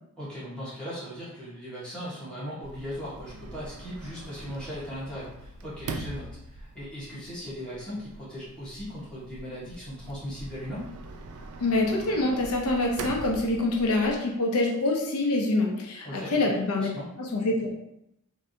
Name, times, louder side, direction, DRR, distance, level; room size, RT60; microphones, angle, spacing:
voice 1, 0.2-10.9 16.0-16.5 16.8-17.1, equal, 5° left, -10 dB, 1.2 m, -38 dB
Sliding door, 2.6-14.2, right 3 dB, 80° right, 0.3 m, -42 dB
voice 2, 11.6-16.9 17.2-17.8, left 2 dB, 85° left, 1 dB, 0.6 m, -25 dB
3.3 x 2.6 x 2.7 m, 0.81 s
head